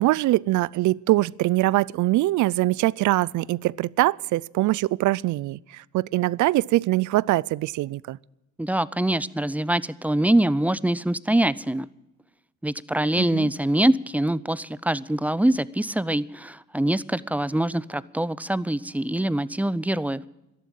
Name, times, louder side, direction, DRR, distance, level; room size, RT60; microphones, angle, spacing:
voice 1, 0.0-8.2 13.2-13.5, right 17 dB, 75° right, 0.5 m, -23 dB
voice 2, 8.6-11.9 12.6-20.2, right 1 dB, 5° right, 0.5 m, -24 dB
13.0 x 11.0 x 8.7 m
cardioid pair, 90°, 30 cm